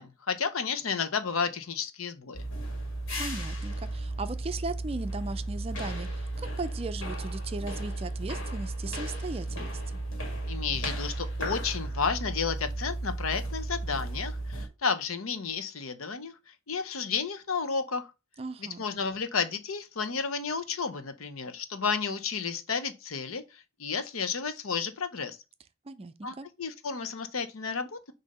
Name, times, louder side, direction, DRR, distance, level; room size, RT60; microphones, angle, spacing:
voice 1, 0.0-2.5 10.2-18.1 18.6-25.4 26.2-28.1, left 5 dB, 85° left, 0.8 m, -32 dB
sound 1, 2.3-14.7, right 1 dB, 65° left, 1.9 m, -34 dB
voice 2, 3.2-10.0 18.4-18.8 25.9-26.5, right 3 dB, 30° right, 0.4 m, -37 dB
6.5 x 2.7 x 5.3 m
head